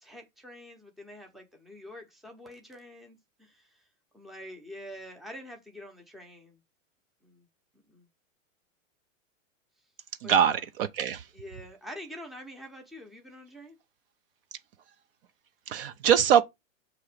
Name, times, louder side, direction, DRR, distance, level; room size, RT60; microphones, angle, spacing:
voice 1, 0.0-3.8 4.1-6.6 7.2-7.5 7.9-8.1 10.2-10.6 11.3-13.8, equal, ahead, 0.7 m, -46 dB
voice 2, 10.2-11.2 15.7-16.4, right 8 dB, 45° right, 0.5 m, -23 dB
6.7 x 3.0 x 4.8 m
supercardioid pair, 150°, 40 cm